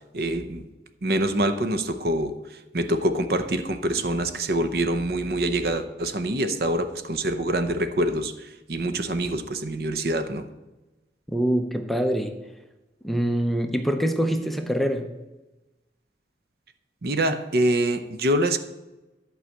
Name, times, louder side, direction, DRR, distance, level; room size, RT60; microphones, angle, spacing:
voice 1, 0.1-0.7 1.0-2.3 2.7-8.3 8.7-10.4 17.0-18.6, right 1 dB, 60° right, 9 dB, 0.7 m, -25 dB
voice 2, 11.3-12.3 13.0-15.1, equal, ahead, 6 dB, 0.6 m, -24 dB
11.5 x 4.8 x 7.7 m, 1.1 s
head